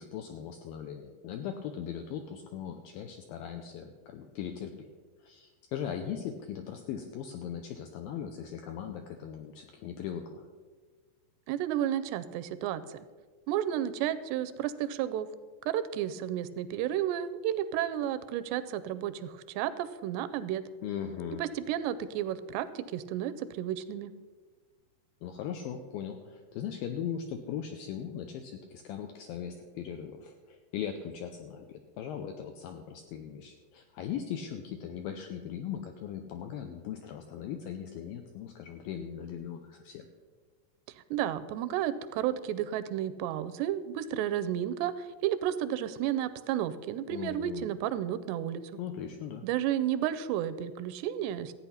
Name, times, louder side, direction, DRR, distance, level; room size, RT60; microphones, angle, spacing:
voice 1, 0.0-4.9 5.2-10.5 20.8-21.4 25.2-40.1 47.1-47.6 48.8-49.4, left 8 dB, 85° left, 5 dB, 2.1 m, -39 dB
voice 2, 11.5-13.0 13.5-15.3 15.7-20.6 21.4-24.1 41.1-48.8 49.4-51.5, right 11 dB, 85° right, 14 dB, 2.7 m, -32 dB
14.5 x 8.9 x 5.6 m, 1.4 s
omnidirectional pair, 4.9 m